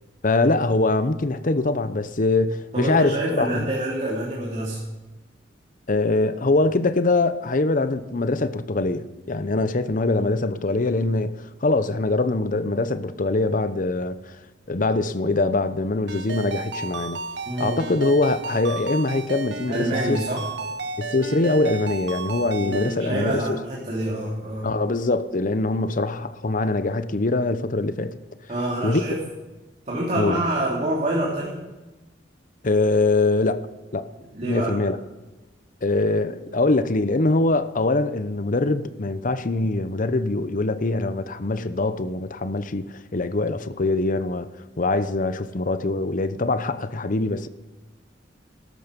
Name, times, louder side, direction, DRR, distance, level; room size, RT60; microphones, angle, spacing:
voice 1, 0.2-3.6 5.9-14.3 14.7-17.2 17.6-20.2 21.0-23.6 24.6-28.2 28.8-29.0 30.2-30.4 32.6-34.1 34.4-35.0 35.8-44.5 44.8-47.5, left 2 dB, 50° left, 0.8 m, -23 dB
voice 2, 2.7-4.8 17.4-17.9 19.7-20.5 22.6-24.8 28.5-29.2 29.9-31.6 34.3-34.7, right 1 dB, 40° right, 3.0 m, -27 dB
Ringtone, 16.1-22.9, right 4 dB, 70° right, 1.0 m, -32 dB
16.5 x 13.0 x 5.2 m
head